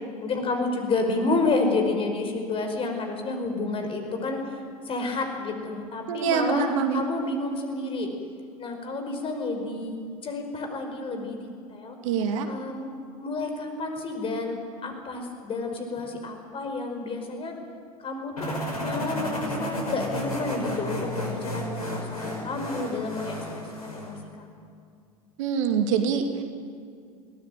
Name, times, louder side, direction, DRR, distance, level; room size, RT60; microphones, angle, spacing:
voice 1, 0.2-4.6 4.8-6.7 6.9-8.1 8.6-12.0 12.5-12.9 13.2-17.5 18.0-24.6, left 3 dB, 30° left, 4 dB, 5.1 m, -30 dB
voice 2, 6.1-7.0 12.0-12.5 25.4-26.4, right 7 dB, 60° right, 7 dB, 2.3 m, -25 dB
sound 1, 18.4-24.2, equal, 80° left, 5.3 m, -32 dB
23.0 x 18.0 x 9.2 m, 2.3 s
figure-of-eight pair, 80°, 19 cm